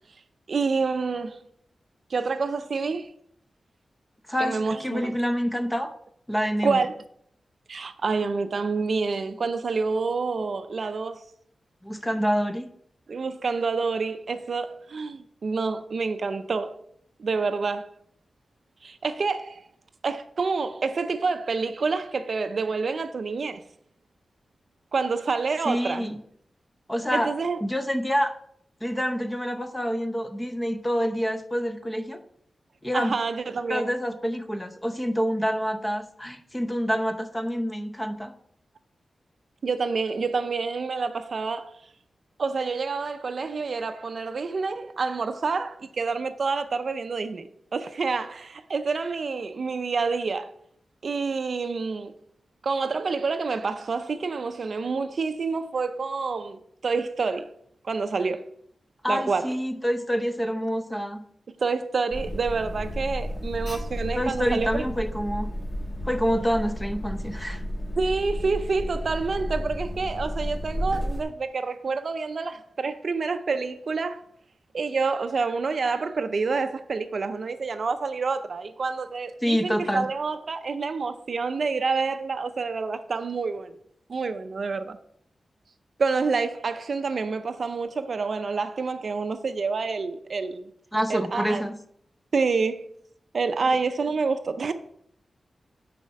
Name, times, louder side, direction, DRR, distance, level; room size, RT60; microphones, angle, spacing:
voice 1, 0.5-1.4 2.1-3.1 4.4-5.2 6.6-7.0 7.7-11.2 13.1-16.8 17.2-17.9 18.8-19.6 20.0-23.6 24.9-26.1 27.1-27.6 32.9-33.9 39.6-41.8 42.4-50.5 51.0-52.1 52.6-57.5 57.8-58.5 59.1-59.5 61.6-64.8 68.0-74.2 74.7-83.7 84.1-85.0 86.0-90.7 91.1-91.6 92.3-92.9 93.3-94.7, right 4 dB, 50° right, 0.5 m, -28 dB
voice 2, 4.3-5.9 6.3-6.9 11.8-12.7 25.6-26.2 26.9-27.3 27.6-28.3 28.8-32.2 32.8-33.2 33.7-38.3 59.0-61.2 64.2-65.5 66.0-67.6 79.4-80.1 90.9-91.7, equal, 10° left, 0.6 m, -27 dB
Alarm, 62.1-71.2, equal, 30° left, 1.2 m, -32 dB
9.7 x 4.2 x 4.6 m
wide cardioid pair, 170°, 0 cm